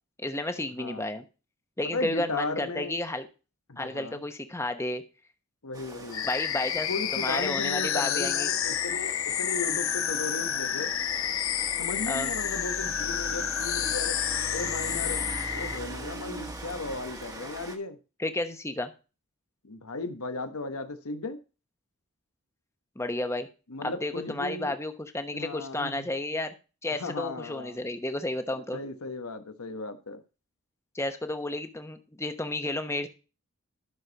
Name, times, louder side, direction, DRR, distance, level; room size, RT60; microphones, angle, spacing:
voice 1, 0.2-1.2 1.8-3.3 3.8-5.0 6.2-8.5 12.1-12.3 18.2-18.9 23.0-23.5 23.8-26.5 26.8-28.8 30.9-33.1, left 2 dB, 10° left, 1.0 m, -32 dB
voice 2, 0.8-1.1 1.8-2.9 3.7-4.2 5.6-6.3 6.9-10.9 11.8-14.2 14.5-15.2 15.5-18.0 19.6-21.4 23.7-24.8 25.3-26.1 27.0-27.8 28.5-30.2, left 3 dB, 90° left, 1.2 m, -36 dB
Rain, 5.7-17.8, right 1 dB, 15° right, 1.3 m, -41 dB
sound 1, 6.1-15.8, left 10 dB, 65° left, 0.8 m, -30 dB
12.5 x 6.4 x 4.0 m
head